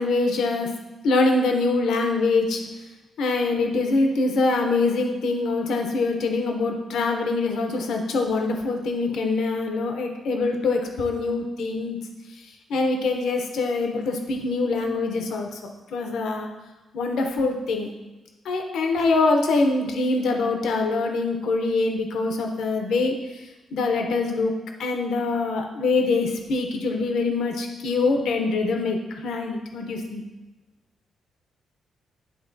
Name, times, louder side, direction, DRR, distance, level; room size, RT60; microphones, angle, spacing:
voice 1, 0.0-2.6 3.2-12.0 12.3-15.6 15.9-16.5 16.9-17.9 18.4-24.5 24.8-30.2, left 3 dB, 75° left, 3 dB, 0.7 m, -24 dB
10.0 x 3.6 x 2.7 m, 1.1 s
cardioid pair, 145°, 0 cm